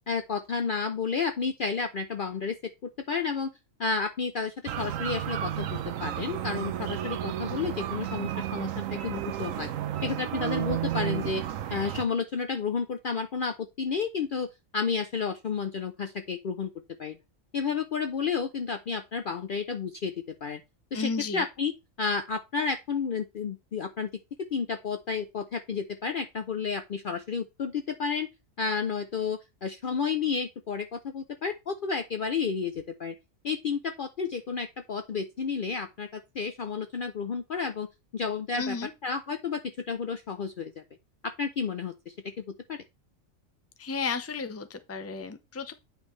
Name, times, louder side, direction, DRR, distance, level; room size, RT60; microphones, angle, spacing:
voice 1, 0.1-3.5 3.8-9.7 10.0-11.4 11.7-16.7 17.0-17.2 17.5-20.1 20.4-20.6 20.9-21.7 22.0-24.1 24.5-28.3 28.6-33.1 33.4-37.9 38.1-38.8 39.0-39.6 39.9-40.8 41.2-42.1 42.7-42.8, left 5 dB, 55° left, 0.6 m, -31 dB
sound 1, 4.7-12.1, right 11 dB, 80° right, 1.0 m, -32 dB
voice 2, 20.9-21.4 38.5-38.9 43.8-45.7, left 4 dB, 15° left, 0.5 m, -33 dB
9.0 x 5.2 x 3.2 m
omnidirectional pair, 1.4 m